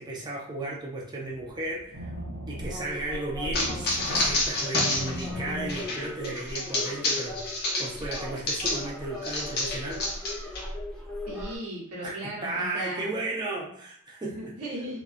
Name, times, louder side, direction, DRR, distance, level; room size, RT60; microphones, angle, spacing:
voice 1, 0.0-2.1 2.5-10.1 12.0-14.5, right 2 dB, 20° right, -3 dB, 0.4 m, -35 dB
sound 1, 1.2-6.4, equal, 65° right, 0.6 m, -40 dB
sound 2, 2.6-11.6, left 1 dB, ahead, 0.8 m, -38 dB
sound 3, 3.5-8.9 9.2-10.6, left 2 dB, 45° left, 0.5 m, -29 dB
voice 2, 11.3-13.1 14.2-15.0, right 1 dB, 90° right, -5 dB, 1.0 m, -37 dB
2.4 x 2.2 x 2.4 m, 0.64 s
head